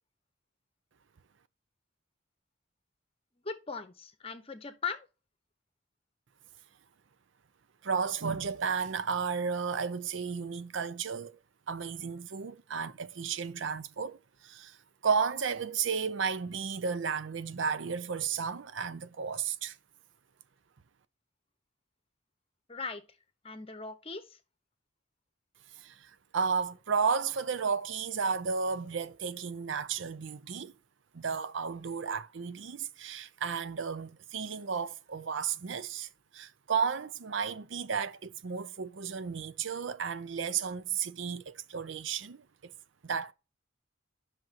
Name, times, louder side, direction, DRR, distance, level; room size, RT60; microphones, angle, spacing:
voice 1, 3.4-5.1 22.7-23.0 23.4-24.4, left 5 dB, 30° left, 1.0 m, -39 dB
voice 2, 7.8-11.4 11.7-14.8 15.0-19.8 25.8-30.7 31.1-36.1 36.3-42.7 43.0-43.3, right 6 dB, 70° right, 0.6 m, -33 dB
10.5 x 6.1 x 2.9 m
head